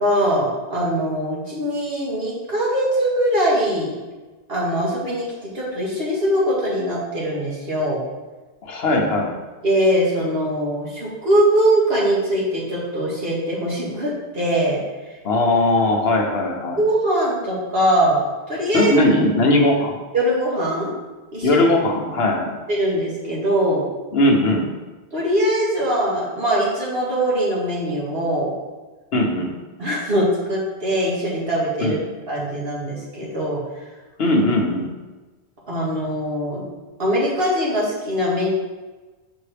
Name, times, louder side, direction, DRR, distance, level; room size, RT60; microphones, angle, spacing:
voice 1, 0.0-3.9 4.5-8.0 9.6-15.2 16.8-18.9 20.1-20.9 21.3-21.6 22.7-23.9 25.1-28.5 29.8-32.0 32.3-33.6 35.7-36.6 37.0-38.5, equal, 60° right, -5 dB, 1.9 m, -22 dB
voice 2, 8.6-9.4 15.2-16.8 18.7-20.0 21.4-22.6 24.1-24.7 29.1-29.5 31.8-32.0 34.2-34.9, left 1 dB, 65° left, 1 dB, 1.1 m, -19 dB
6.0 x 5.3 x 3.4 m, 1.2 s
omnidirectional pair, 1.1 m